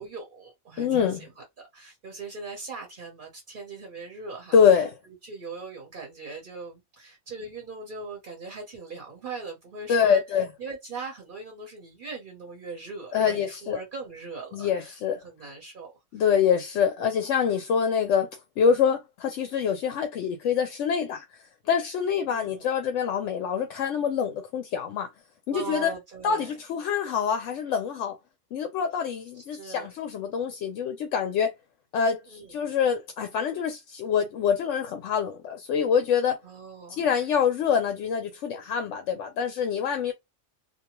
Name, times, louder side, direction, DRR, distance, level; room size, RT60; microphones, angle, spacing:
voice 1, 0.0-16.2 17.0-17.1 17.8-17.9 22.2-22.7 25.5-26.5 29.3-29.9 32.3-32.5 36.4-37.0, right 4 dB, 45° right, 0.9 m, -40 dB
voice 2, 0.8-1.3 4.5-4.9 9.9-10.5 13.1-13.8 14.5-15.2 16.1-18.3 18.6-21.2 21.7-25.1 25.5-25.9 26.2-28.2 28.5-31.5 31.9-36.4 37.0-40.1, left 7 dB, 70° left, 0.8 m, -25 dB
2.6 x 2.1 x 2.9 m
omnidirectional pair, 1.4 m